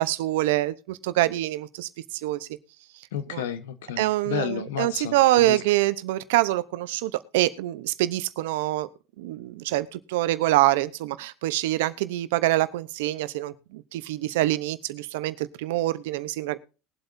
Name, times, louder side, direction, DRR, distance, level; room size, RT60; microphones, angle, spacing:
voice 1, 0.0-2.5 3.3-3.4 4.0-8.9 9.2-16.6, right 16 dB, 80° right, 0.8 m, -25 dB
voice 2, 3.1-5.6, left 9 dB, 85° left, 1.1 m, -32 dB
21.0 x 8.0 x 2.6 m
hypercardioid pair, 90°, 0 cm